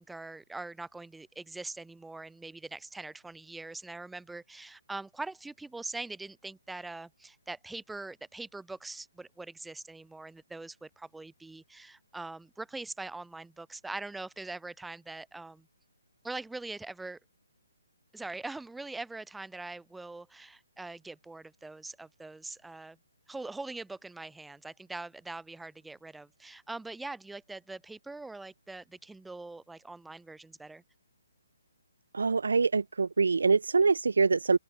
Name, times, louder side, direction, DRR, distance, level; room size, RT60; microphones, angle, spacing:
voice 1, 0.0-15.7 16.2-17.2 18.1-23.0 23.3-30.8, right 3 dB, 5° right, 7.4 m, -42 dB
voice 2, 32.1-34.6, right 4 dB, 70° right, 0.4 m, -24 dB
open air
figure-of-eight pair, 140°, 0 cm